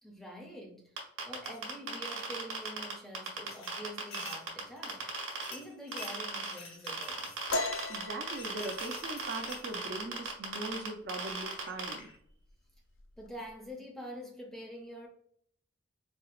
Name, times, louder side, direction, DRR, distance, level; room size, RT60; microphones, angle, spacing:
voice 1, 0.0-1.0 1.2-5.1 5.5-7.5 13.2-15.1, equal, ahead, 1 dB, 0.5 m, -46 dB
sound 1, 1.0-5.5 5.9-6.5 6.9-11.9, right 5 dB, 70° right, 1.2 m, -36 dB
sound 2, 1.4-1.8 2.2-2.7 3.5-9.9 10.9-11.0 11.3-12.2, left 3 dB, 85° left, 1.0 m, -50 dB
sound 3, 7.5-10.9 11.3-11.6 12.0-12.5 12.8-13.5, left 2 dB, 70° left, 0.4 m, -38 dB
voice 2, 7.9-12.1, right 2 dB, 55° right, 5 dB, 0.5 m, -40 dB
4.4 x 2.8 x 2.4 m, 0.65 s
head